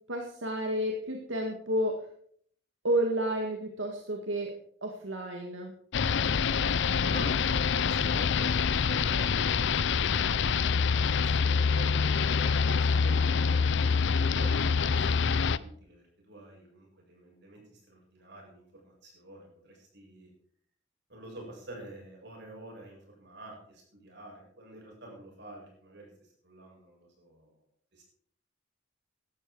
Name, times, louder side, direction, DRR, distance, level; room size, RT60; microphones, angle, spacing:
voice 1, 0.1-2.1 2.8-4.6 4.8-5.7, right 1 dB, 85° right, 2 dB, 2.0 m, -31 dB
sound 1, 5.9-15.6, left 5 dB, 70° left, 0.5 m, -26 dB
voice 2, 7.1-12.0 12.3-20.3 21.1-27.6 27.9-28.0, right 2 dB, 65° right, -1 dB, 8.0 m, -48 dB
16.5 x 12.5 x 4.8 m, 0.62 s
head